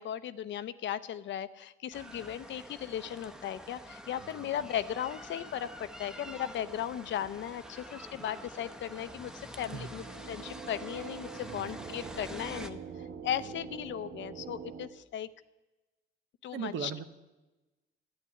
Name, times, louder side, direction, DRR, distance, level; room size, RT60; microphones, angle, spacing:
voice 1, 0.0-12.8 13.2-15.3 16.4-16.9, left 10 dB, 70° left, 14 dB, 0.7 m, -37 dB
sound 1, 1.9-12.7, equal, 5° right, 0.8 m, -47 dB
sound 2, 9.4-14.9, right 6 dB, 50° right, 1.4 m, -45 dB
voice 2, 11.4-12.2 13.4-13.6 16.5-17.1, right 7 dB, 75° right, 11 dB, 1.0 m, -41 dB
11.5 x 8.2 x 9.8 m, 1.1 s
cardioid pair, 90°, 20 cm